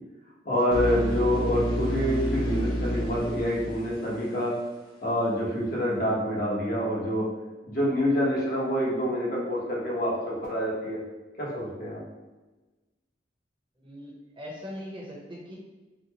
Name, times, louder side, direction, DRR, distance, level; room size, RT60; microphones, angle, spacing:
voice 1, 0.4-4.6 5.0-7.3 7.6-11.0 11.4-12.0, equal, 55° left, -6 dB, 1.1 m, -27 dB
sound 1, 0.7-4.6, equal, 30° left, 0.6 m, -30 dB
voice 2, 13.8-15.5, equal, 30° right, -4 dB, 0.8 m, -41 dB
4.1 x 2.1 x 2.9 m, 1.1 s
head